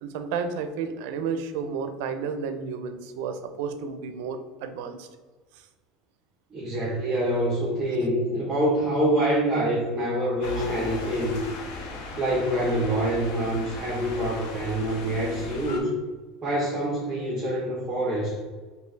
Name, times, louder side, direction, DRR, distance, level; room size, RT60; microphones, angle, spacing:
voice 1, 0.0-5.1, right 5 dB, 75° right, 8 dB, 0.4 m, -32 dB
voice 2, 6.5-11.4 12.2-16.0 16.4-18.4, right 1 dB, 15° right, -5 dB, 1.0 m, -26 dB
sound 1, 10.4-15.8, left 3 dB, 70° left, 0.7 m, -37 dB
4.3 x 2.7 x 3.3 m, 1.3 s
cardioid pair, 150°, 0 cm